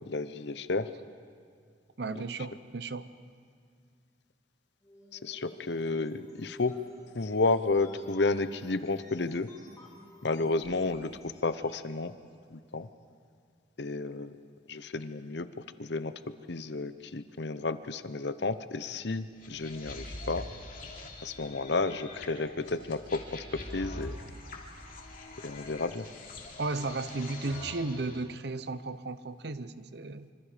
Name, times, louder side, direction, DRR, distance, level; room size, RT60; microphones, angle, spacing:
voice 1, 0.1-0.9 2.1-2.2 5.1-6.7 7.1-9.5 10.2-12.1 12.5-12.9 13.8-14.4 14.7-15.5 15.8-16.1 16.5-20.5 21.2-24.2 25.4-26.1, left 3 dB, 65° left, 12 dB, 0.8 m, -31 dB
voice 2, 2.0-3.1 26.6-30.3, right 3 dB, 60° right, 13 dB, 0.8 m, -35 dB
sound 1, 4.8-12.0, left 1 dB, 20° left, 2.3 m, -52 dB
sound 2, 19.4-28.2, left 2 dB, 50° left, 3.1 m, -44 dB
26.0 x 25.5 x 5.1 m, 2.1 s
head